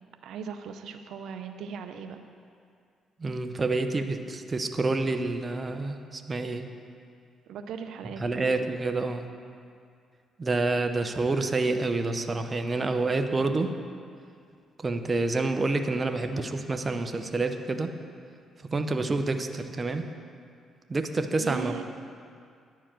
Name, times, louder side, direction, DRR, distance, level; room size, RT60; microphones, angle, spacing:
voice 1, 0.2-2.2 7.5-8.6 21.4-21.8, right 7 dB, 80° right, 7 dB, 0.5 m, -38 dB
voice 2, 3.2-6.7 8.2-9.3 10.4-13.7 14.8-17.9 18.7-20.1 20.9-21.7, right 3 dB, 30° right, 7 dB, 0.6 m, -28 dB
10.0 x 4.6 x 7.4 m, 2.3 s
cardioid pair, 90°, 0 cm